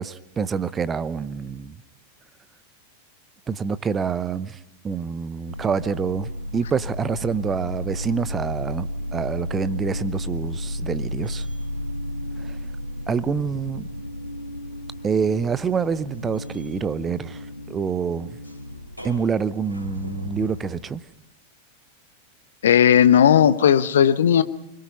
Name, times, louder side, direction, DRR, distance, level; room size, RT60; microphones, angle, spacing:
voice 1, 0.0-1.8 3.5-11.5 12.4-12.6 13.1-13.9 15.0-18.4 19.0-21.0, right 6 dB, 20° right, 0.8 m, -27 dB
sound 1, 5.5-20.8, left 1 dB, 90° right, 3.4 m, -33 dB
voice 2, 22.6-24.4, left 9 dB, 65° left, 1.0 m, -15 dB
29.0 x 22.0 x 5.6 m
figure-of-eight pair, 90°, 0 cm